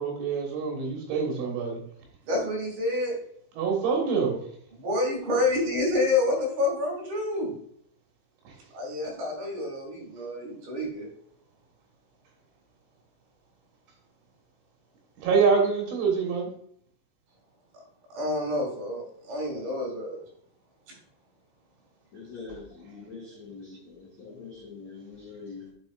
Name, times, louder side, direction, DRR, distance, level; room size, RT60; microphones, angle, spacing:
voice 1, 0.0-1.8 3.6-4.4 15.2-16.5, right 5 dB, 70° right, -1 dB, 3.9 m, -25 dB
voice 2, 2.3-3.1 4.8-7.5 8.7-11.1 18.1-20.2, left 2 dB, 55° right, -1 dB, 4.2 m, -28 dB
voice 3, 22.1-25.7, left 4 dB, 50° left, -6 dB, 2.1 m, -43 dB
10.5 x 5.5 x 2.5 m, 0.65 s
omnidirectional pair, 5.6 m